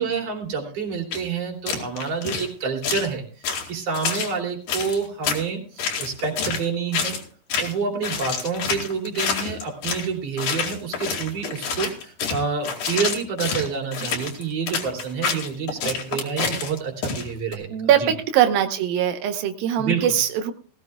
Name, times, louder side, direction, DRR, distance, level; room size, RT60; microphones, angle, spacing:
voice 1, 0.0-7.2 7.6-18.1 19.8-20.1, right 5 dB, 45° right, 1 dB, 3.9 m, -28 dB
sound 1, 1.1-1.2 1.7-2.5 2.8-3.1 3.4-4.3 4.7-5.4 5.8-6.7 6.9-7.2 7.5-7.8 8.0-10.1 10.4-17.6, left 6 dB, 65° left, 3.7 m, -27 dB
voice 2, 17.7-20.5, right 10 dB, 90° right, 6 dB, 2.8 m, -21 dB
19.5 x 15.5 x 2.3 m, 0.41 s
omnidirectional pair, 4.1 m